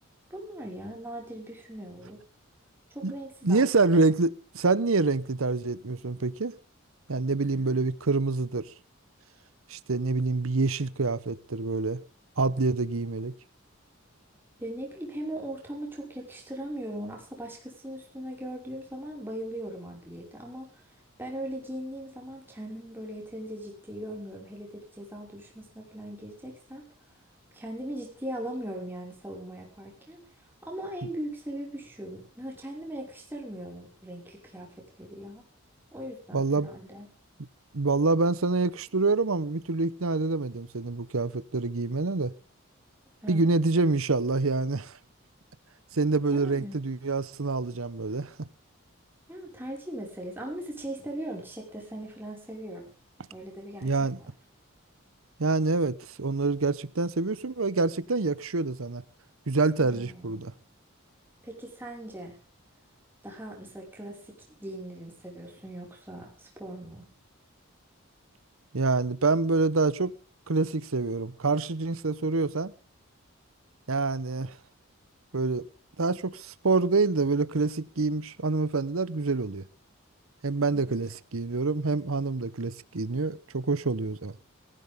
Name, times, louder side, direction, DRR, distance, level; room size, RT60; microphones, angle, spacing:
voice 1, 0.3-2.2 2.9-4.1 14.6-20.8 21.2-26.9 27.5-30.2 30.6-35.4 35.9-37.1 43.2-43.5 46.3-46.8 49.3-52.9 53.3-54.3 59.8-60.5 61.4-62.3 63.2-67.0 80.7-81.0, right 1 dB, 10° right, 5.6 m, -39 dB
voice 2, 3.4-6.5 7.1-8.7 9.7-12.0 12.4-13.3 31.0-31.1 36.3-36.7 37.7-42.3 43.3-44.9 45.9-48.5 53.8-54.2 55.4-59.0 59.5-60.5 68.7-70.1 70.5-72.7 73.9-74.5 75.3-75.7 76.0-79.6 80.4-84.3, right 3 dB, 80° right, 0.9 m, -26 dB
19.0 x 15.5 x 3.7 m
head